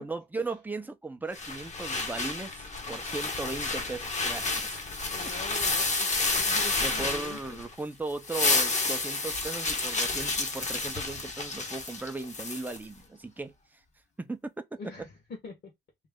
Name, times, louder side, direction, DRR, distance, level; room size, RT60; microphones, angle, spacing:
voice 1, 0.0-4.8 6.8-13.5 14.2-14.5, right 3 dB, 10° right, 0.6 m, -37 dB
sound 1, 1.3-7.7 8.1-12.8, left 3 dB, 35° left, 1.1 m, -30 dB
voice 2, 5.0-7.6 14.8-15.1 15.4-15.5, left 4 dB, 55° left, 1.5 m, -44 dB
3.1 x 2.5 x 3.7 m
cardioid pair, 90°, 20 cm